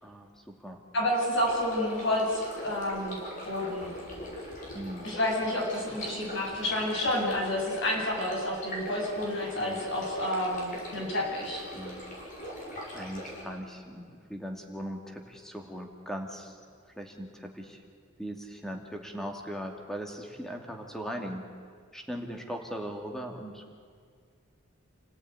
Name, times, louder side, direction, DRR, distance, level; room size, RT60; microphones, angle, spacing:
voice 1, 0.0-0.8 4.7-5.1 9.6-9.8 11.7-12.0 12.9-16.5 17.0-17.8 18.2-21.4 21.9-23.7, equal, ahead, 2 dB, 2.4 m, -39 dB
voice 2, 0.9-3.2 3.4-3.9 5.0-11.7, left 1 dB, 60° left, -1 dB, 7.8 m, -29 dB
sound 1, 1.4-13.4, equal, 40° left, 7.1 m, -42 dB
29.0 x 17.5 x 9.6 m, 2.1 s
head